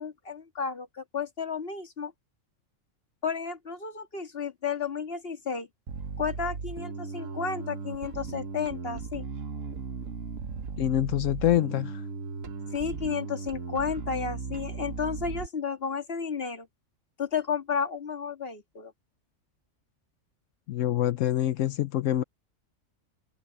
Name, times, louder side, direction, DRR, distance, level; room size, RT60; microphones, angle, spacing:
voice 1, 0.0-2.1 3.2-5.7 6.2-9.3 12.7-16.7 17.2-18.9, left 6 dB, 50° left, 2.0 m, -32 dB
Bass guitar, 5.9-15.5, right 5 dB, 80° right, 1.6 m, -37 dB
voice 2, 10.8-12.0 20.7-22.2, left 12 dB, 80° left, 1.0 m, -26 dB
omnidirectional pair, 1.3 m